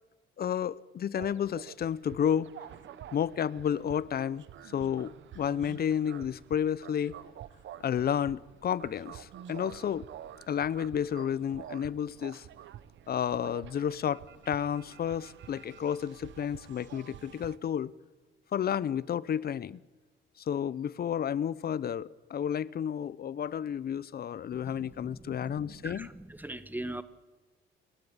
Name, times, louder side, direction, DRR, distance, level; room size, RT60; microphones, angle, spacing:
voice 1, 0.4-2.5 3.1-7.1 7.8-10.1 10.5-12.5 13.1-17.9 18.5-19.8 20.5-26.1, left 9 dB, 50° left, 0.7 m, -31 dB
sound 1, 1.2-17.6, right 11 dB, 70° right, 1.0 m, -49 dB
voice 2, 24.5-27.0, right 1 dB, 10° right, 1.5 m, -41 dB
29.0 x 12.0 x 8.9 m
cardioid pair, 90°, 20 cm